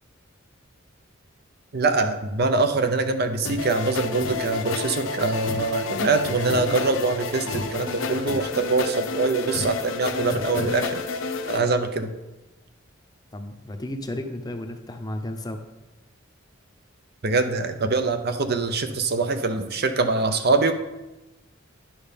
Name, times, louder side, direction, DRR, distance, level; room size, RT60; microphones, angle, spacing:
voice 1, 1.7-11.0 11.5-12.1 17.2-20.7, right 3 dB, 50° right, 8 dB, 0.7 m, -24 dB
sound 1, 3.4-11.6, left 4 dB, 80° left, 0.8 m, -30 dB
voice 2, 13.3-15.6, left 1 dB, 20° left, 6 dB, 0.7 m, -33 dB
10.0 x 5.5 x 5.2 m, 1.0 s
head